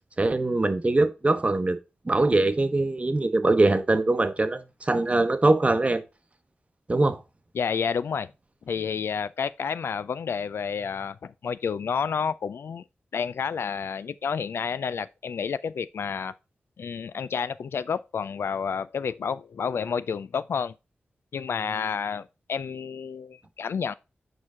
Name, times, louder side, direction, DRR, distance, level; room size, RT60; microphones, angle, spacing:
voice 1, 0.2-1.8 2.1-6.0 6.9-7.2, right 2 dB, 30° right, 0.9 m, -22 dB
voice 2, 7.5-8.3 8.7-12.8 13.1-16.3 16.8-20.7 21.3-23.9, left 6 dB, 75° left, 0.3 m, -30 dB
6.6 x 4.6 x 3.6 m
cardioid pair, 55°, 4 cm